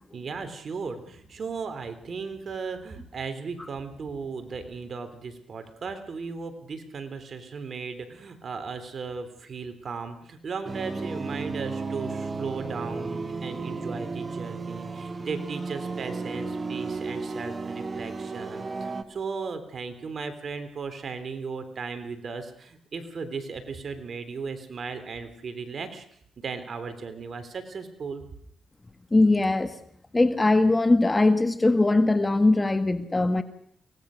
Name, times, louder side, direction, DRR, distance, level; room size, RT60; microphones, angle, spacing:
voice 1, 0.1-26.1 26.4-28.2, right 5 dB, 55° right, 9 dB, 3.4 m, -36 dB
sound 1, 10.7-19.0, right 4 dB, 35° right, 1.6 m, -34 dB
voice 2, 29.1-29.7 30.1-33.4, left 2 dB, 20° left, 10 dB, 1.5 m, -21 dB
23.5 x 18.5 x 6.5 m, 0.65 s
cardioid pair, 75°, 0 cm